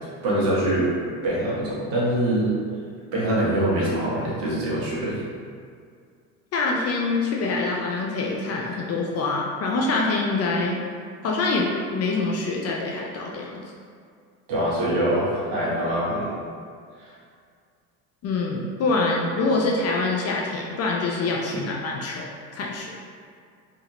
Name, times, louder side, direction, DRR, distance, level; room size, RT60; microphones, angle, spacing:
voice 1, 0.2-0.9 1.2-2.6 3.1-5.2 14.5-16.3, right 1 dB, 70° right, -6 dB, 1.2 m, -24 dB
voice 2, 6.5-10.8 11.2-13.6 18.2-22.3 22.6-22.9, left 3 dB, 35° left, -2 dB, 0.4 m, -25 dB
2.8 x 2.4 x 2.9 m, 2.2 s
hypercardioid pair, 80°, 46 cm